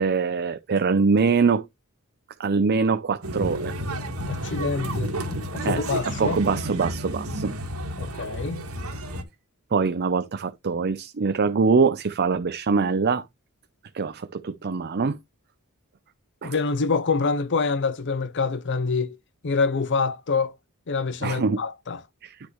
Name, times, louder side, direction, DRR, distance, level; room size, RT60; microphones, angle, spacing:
voice 1, 0.0-1.7 2.4-3.8 5.6-7.5 9.7-13.2 13.9-15.2 16.4-16.5 21.2-21.6 22.2-22.4, right 4 dB, 50° right, 0.5 m, -23 dB
sound 1, 3.2-9.2, right 1 dB, 75° right, 2.0 m, -31 dB
voice 2, 4.2-6.4 8.0-8.7 16.4-19.2 19.4-20.5 20.9-22.0, left 4 dB, 55° left, 0.7 m, -26 dB
10.0 x 6.2 x 3.1 m
head